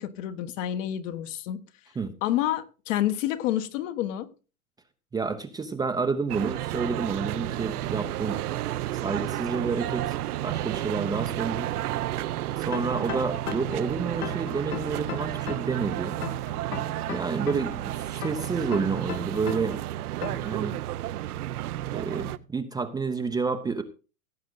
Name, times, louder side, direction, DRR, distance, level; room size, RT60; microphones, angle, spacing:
voice 1, 0.0-1.6 2.2-4.3, left 12 dB, 55° left, 1.6 m, -28 dB
voice 2, 5.1-8.4 9.0-10.2 10.4-11.7 12.6-16.2 17.1-19.8 20.2-20.7 21.9-23.8, right 4 dB, 10° right, 0.7 m, -29 dB
sound 1, 6.3-22.4, right 14 dB, 80° right, 0.9 m, -32 dB
sound 2, 12.7-13.8 14.2-15.8 16.2-17.8 18.2-19.8 20.2-20.5, left 8 dB, 85° left, 2.8 m, -35 dB
17.0 x 7.7 x 3.9 m
supercardioid pair, 145°, 44 cm